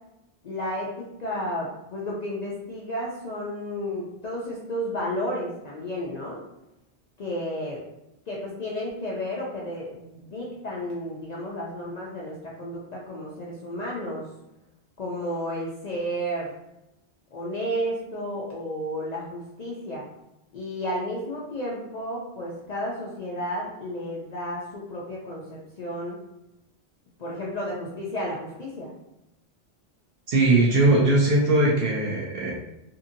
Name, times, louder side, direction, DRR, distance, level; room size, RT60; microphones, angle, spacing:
voice 1, 0.4-6.4 7.2-7.8 8.3-14.3 15.0-16.5 17.3-20.1 20.5-26.2 27.2-28.9, equal, 55° left, -4 dB, 0.5 m, -32 dB
voice 2, 30.3-32.5, right 2 dB, 70° right, -3 dB, 0.8 m, -20 dB
2.8 x 2.6 x 2.5 m, 0.91 s
omnidirectional pair, 1.1 m